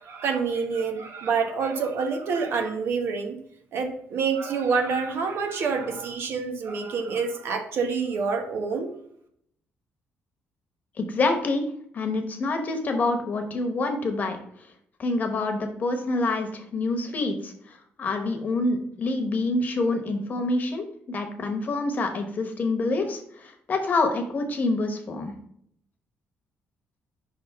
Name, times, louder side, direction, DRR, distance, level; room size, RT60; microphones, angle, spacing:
voice 1, 0.0-3.4 3.7-8.9, right 5 dB, 65° right, 4 dB, 1.1 m, -27 dB
voice 2, 11.0-11.7 11.9-14.4 15.0-25.3, left 2 dB, 40° left, 5 dB, 1.1 m, -27 dB
5.3 x 3.5 x 5.4 m, 0.68 s
cardioid pair, 115°, 4 cm